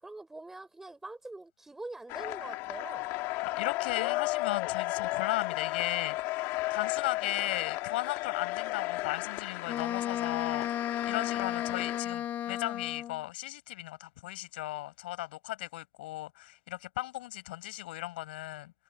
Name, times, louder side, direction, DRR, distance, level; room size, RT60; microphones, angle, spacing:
voice 1, 0.0-3.1, right 2 dB, 5° right, 5.5 m, -44 dB
sound 1, 2.1-12.0, left 20 dB, 55° left, 2.2 m, -34 dB
voice 2, 3.6-10.7 11.0-18.7, left 17 dB, 80° left, 7.1 m, -36 dB
Wind instrument woodwind instrument, 9.7-13.2, left 11 dB, 35° left, 2.4 m, -34 dB
supercardioid pair, 145°, 5 cm